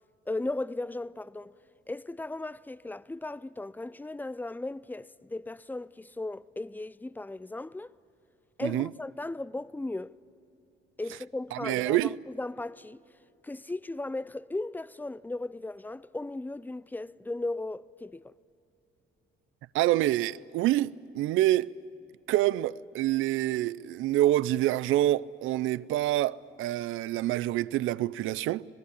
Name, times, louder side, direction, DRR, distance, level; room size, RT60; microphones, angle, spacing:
voice 1, 0.3-1.5 1.9-8.0 8.6-10.2 11.0-13.0 13.4-18.3, left 2 dB, 10° left, 0.5 m, -36 dB
voice 2, 11.6-12.1 19.7-21.7 22.3-28.7, right 15 dB, 85° right, 0.5 m, -26 dB
26.5 x 19.5 x 8.6 m
cardioid pair, 90°, 20 cm